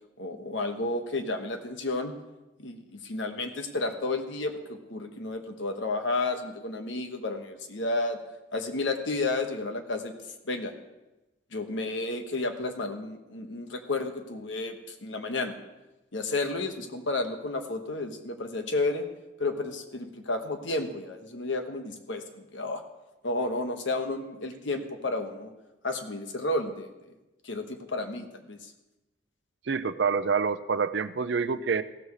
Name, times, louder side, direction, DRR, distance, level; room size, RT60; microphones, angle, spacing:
voice 1, 0.2-2.1 2.6-8.2 8.5-10.1 10.4-10.7 11.5-15.5 16.1-19.0 19.4-22.8 23.2-25.5 25.8-26.9 27.4-28.7, left 2 dB, 70° left, 6 dB, 1.2 m, -32 dB
voice 2, 29.7-31.8, right 5 dB, 60° right, 12 dB, 0.5 m, -27 dB
15.5 x 6.9 x 4.9 m, 1.0 s
head